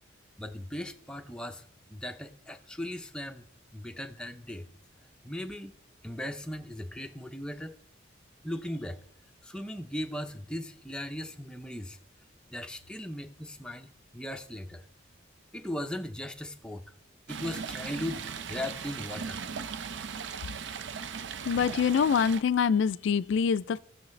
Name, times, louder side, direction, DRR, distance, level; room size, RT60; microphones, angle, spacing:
voice 1, 0.4-1.6 1.9-3.5 3.7-4.7 5.2-5.8 6.0-7.8 8.4-9.0 9.4-12.0 12.5-14.9 15.5-16.8 17.3-19.4, left 1 dB, 5° left, 0.5 m, -38 dB
Stream, 17.3-22.4, right 6 dB, 65° right, 0.5 m, -38 dB
voice 2, 21.5-23.8, left 6 dB, 70° left, 0.3 m, -25 dB
16.0 x 6.4 x 3.2 m
head